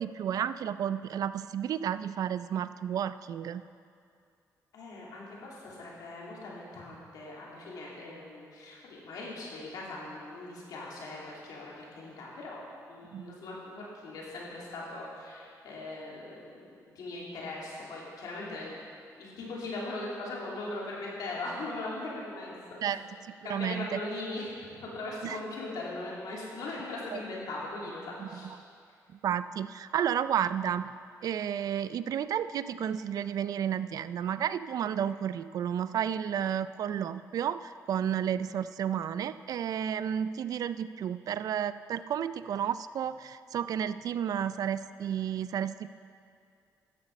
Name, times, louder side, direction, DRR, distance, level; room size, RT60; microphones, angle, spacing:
voice 1, 0.0-3.6 13.1-13.4 22.8-24.0 25.2-25.4 27.1-27.2 28.2-28.6 29.2-30.9 31.2-45.9, right 9 dB, 70° right, 14 dB, 0.4 m, -32 dB
voice 2, 4.7-12.6 12.9-18.9 19.2-23.0 23.4-28.5, left 2 dB, 80° left, -4 dB, 2.8 m, -40 dB
13.0 x 7.9 x 5.3 m, 2.3 s
cardioid pair, 85°, 7 cm